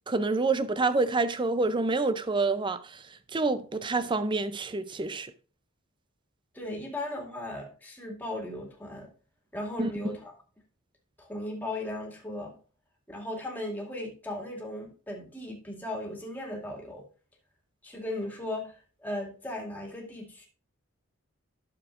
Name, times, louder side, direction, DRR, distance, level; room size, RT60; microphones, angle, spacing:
voice 1, 0.1-3.0 3.3-5.3 9.8-9.9, right 3 dB, 20° right, 0.5 m, -27 dB
voice 2, 6.5-9.1 9.5-10.3 11.2-12.5 13.1-17.0 17.8-20.5, left 1 dB, 10° left, 2.2 m, -37 dB
11.5 x 7.0 x 2.5 m
head